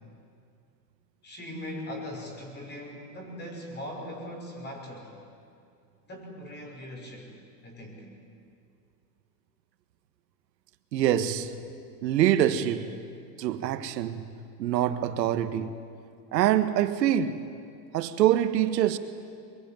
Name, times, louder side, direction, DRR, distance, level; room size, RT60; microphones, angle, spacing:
voice 1, 1.2-5.2 6.1-7.3 7.6-8.1, left 1 dB, 20° left, 6.2 m, -40 dB
voice 2, 10.9-11.5 12.0-12.9 13.4-14.3 14.6-15.7 16.3-17.4 17.9-19.0, right 11 dB, 85° right, 1.6 m, -25 dB
23.0 x 22.0 x 9.2 m
supercardioid pair, 140°, 49 cm